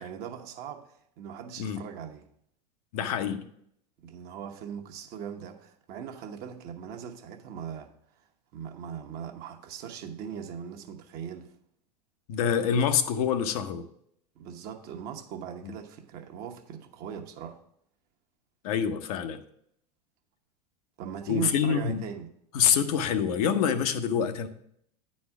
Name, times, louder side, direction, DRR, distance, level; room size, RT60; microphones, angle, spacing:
voice 1, 0.0-2.2 4.0-7.9 8.5-11.5 14.4-17.6 21.0-22.3, right 8 dB, 50° right, 1.1 m, -39 dB
voice 2, 2.9-3.5 12.3-13.9 15.6-15.7 18.6-19.4 21.3-22.0 22.5-24.5, left 7 dB, 60° left, 0.8 m, -26 dB
9.5 x 4.3 x 5.9 m
hypercardioid pair, 90°, 21 cm